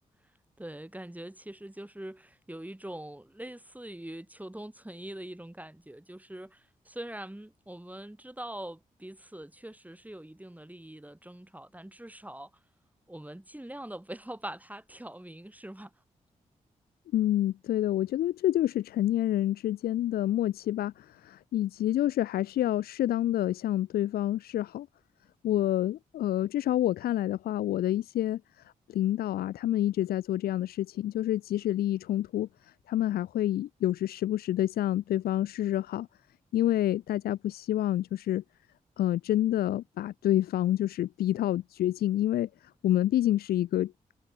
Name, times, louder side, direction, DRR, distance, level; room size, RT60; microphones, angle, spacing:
voice 1, 0.6-12.5 13.1-15.9, right 1 dB, 10° right, 3.5 m, -43 dB
voice 2, 17.1-24.9 25.4-28.4 28.9-32.5 32.9-36.1 36.5-38.4 39.0-42.5 42.8-43.9, left 13 dB, 80° left, 0.4 m, -28 dB
supercardioid pair, 45°, 16 cm